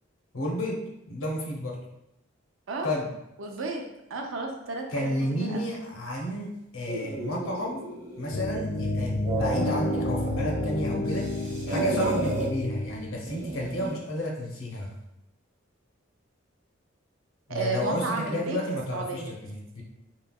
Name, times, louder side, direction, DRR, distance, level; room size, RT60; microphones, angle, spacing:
voice 1, 0.3-0.8 1.1-1.8 2.8-3.1 4.9-7.8 8.2-11.3 11.7-14.9 17.5-19.8, left 1 dB, 80° left, 0 dB, 0.7 m, -31 dB
voice 2, 3.4-5.7 9.6-9.8 10.9-11.0 17.5-18.6 18.9-19.3, right 3 dB, 80° right, 2 dB, 0.5 m, -33 dB
sound 1, 6.8-8.6 9.0-10.7 11.0-12.5 13.3-14.0, right 2 dB, 35° right, 0.7 m, -33 dB
sound 2, 8.3-13.3, left 1 dB, 35° left, 0.3 m, -30 dB
3.1 x 2.7 x 2.3 m, 0.85 s
head